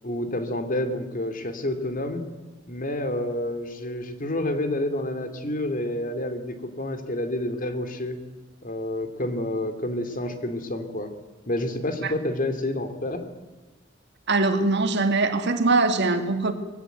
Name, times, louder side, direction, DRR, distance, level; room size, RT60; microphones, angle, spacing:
voice 1, 0.0-2.2 2.7-8.2 8.6-11.1 11.5-13.2, left 1 dB, 45° left, 2.6 m, -29 dB
voice 2, 14.3-16.5, right 3 dB, 60° right, 2.0 m, -22 dB
22.0 x 16.5 x 9.3 m
head